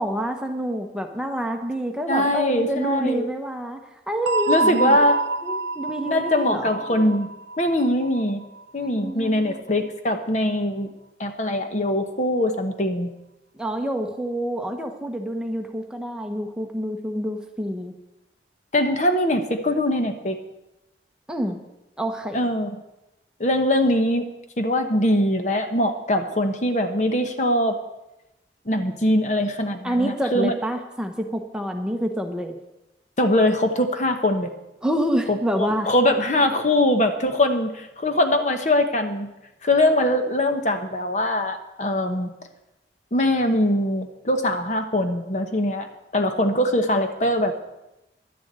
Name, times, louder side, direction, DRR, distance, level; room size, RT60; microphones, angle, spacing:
voice 1, 0.0-3.8 4.1-5.0 5.4-6.7 9.0-9.6 13.6-17.9 21.3-21.6 22.0-22.4 29.8-32.6 34.8-35.9, equal, 5° right, 4 dB, 0.9 m, -27 dB
voice 2, 2.1-3.3 4.5-5.2 6.1-8.4 8.7-10.9 11.2-13.1 18.7-20.4 22.3-22.7 23.4-24.3 24.6-27.8 28.7-30.5 33.2-34.5 35.3-39.3 39.6-42.3 43.1-47.6, left 1 dB, 40° left, 6 dB, 1.0 m, -22 dB
sound 1, 4.3-8.9, right 3 dB, 80° right, 0.5 m, -27 dB
11.5 x 7.1 x 8.8 m, 0.93 s
head